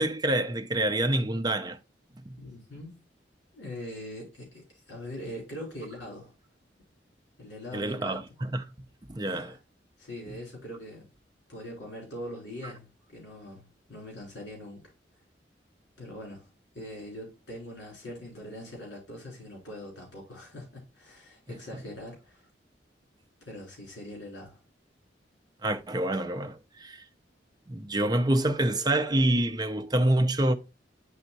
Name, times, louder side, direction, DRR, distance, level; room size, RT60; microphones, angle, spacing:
voice 1, 0.0-1.8 7.7-8.6 9.1-9.6 25.6-27.0 27.7-30.5, right 1 dB, 25° right, 0.6 m, -27 dB
voice 2, 2.4-3.0 3.5-6.3 7.4-8.2 9.2-9.6 10.0-11.1 11.5-14.9 16.0-16.5 16.7-22.4 23.5-24.6, left 1 dB, 75° left, 3.4 m, -42 dB
9.9 x 3.5 x 2.7 m
head